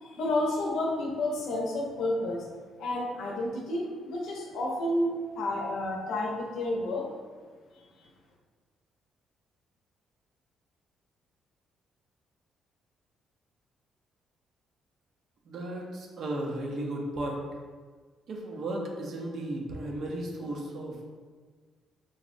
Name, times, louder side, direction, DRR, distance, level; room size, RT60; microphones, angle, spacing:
voice 1, 0.0-2.5 2.8-7.1 7.7-8.1, left 1 dB, 80° left, -1 dB, 0.6 m, -30 dB
voice 2, 15.5-17.4 18.3-21.1, right 1 dB, 65° right, 0 dB, 0.6 m, -35 dB
3.8 x 2.0 x 2.5 m, 1.5 s
cardioid pair, 90°, 0 cm